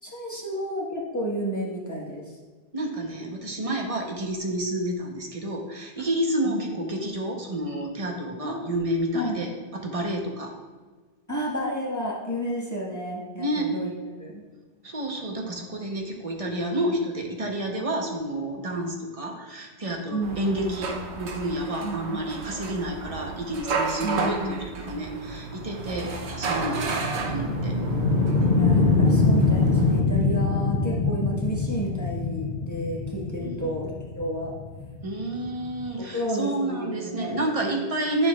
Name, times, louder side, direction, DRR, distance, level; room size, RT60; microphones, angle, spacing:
voice 1, 0.0-2.2 6.0-6.1 6.4-6.6 8.4-8.8 9.1-9.4 11.3-13.9 14.2-14.4 20.1-20.8 21.8-22.2 24.0-25.2 28.5-34.5 35.9-37.9, equal, 15° left, -5 dB, 1.5 m, -32 dB
voice 2, 2.7-10.5 13.4-13.7 14.8-27.8 33.4-33.7 35.0-38.3, right 1 dB, 35° right, 1 dB, 1.0 m, -30 dB
sound 1, 20.2-30.0, right 4 dB, 90° right, 1.1 m, -33 dB
sound 2, 25.2-35.9, left 3 dB, 60° left, 0.8 m, -24 dB
9.5 x 7.0 x 2.4 m, 1.4 s
omnidirectional pair, 1.1 m